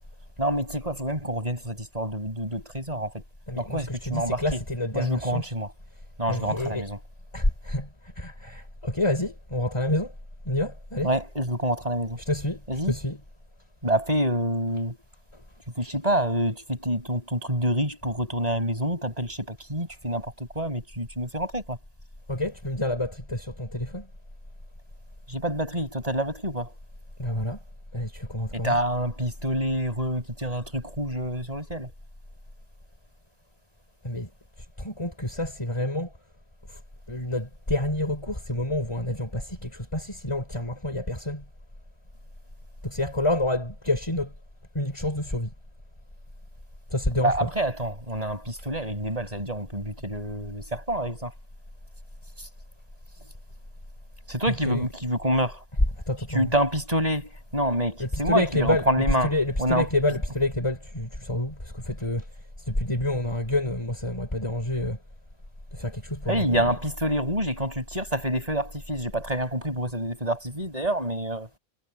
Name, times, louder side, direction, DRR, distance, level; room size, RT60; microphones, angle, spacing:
voice 1, 0.4-3.2 3.6-4.6 4.9-5.7 6.2-7.0 11.0-12.2 12.7-12.9 13.8-15.0 15.7-21.8 25.3-26.7 28.5-31.9 47.2-51.3 52.4-52.5 54.3-55.6 56.3-59.9 66.3-71.5, right 1 dB, 30° right, 6.3 m, -27 dB
voice 2, 3.5-5.4 6.3-6.8 7.3-7.9 8.2-10.1 10.5-11.1 12.3-12.6 12.9-13.2 22.3-24.1 27.2-27.6 27.9-28.7 34.0-34.3 34.8-36.1 37.1-41.4 42.8-44.3 44.7-45.5 46.9-47.5 54.7-54.8 56.1-56.5 58.0-58.8 59.2-62.2 62.7-65.0 65.7-66.6, left 1 dB, 20° left, 4.2 m, -28 dB
omnidirectional pair, 1.3 m